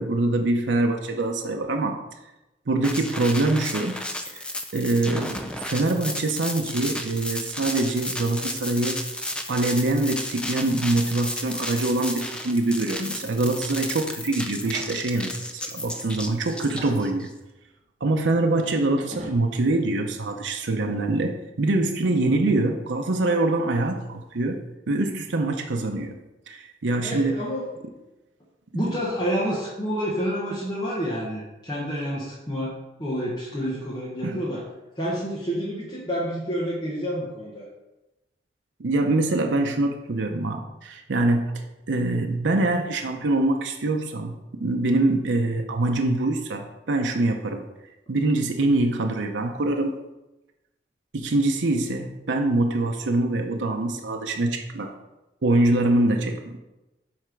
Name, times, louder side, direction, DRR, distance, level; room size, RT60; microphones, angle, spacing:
voice 1, 0.0-2.0 2.7-4.0 4.3-4.5 4.7-9.0 9.5-17.3 18.0-24.6 24.9-26.2 26.5-27.4 34.2-34.4 38.8-47.6 48.1-50.0 51.1-54.9 55.4-56.6, right 2 dB, 85° right, 3 dB, 0.7 m, -24 dB
sound 1, 2.8-17.3, left 1 dB, 5° left, 0.4 m, -33 dB
sound 2, 14.6-14.9 15.8-15.9 16.1-17.2 18.6-19.6, right 1 dB, 40° right, 1.1 m, -41 dB
voice 2, 27.0-27.6 28.7-34.6 35.0-37.7, equal, 20° left, -7 dB, 1.2 m, -29 dB
7.8 x 3.3 x 5.2 m, 1.0 s
head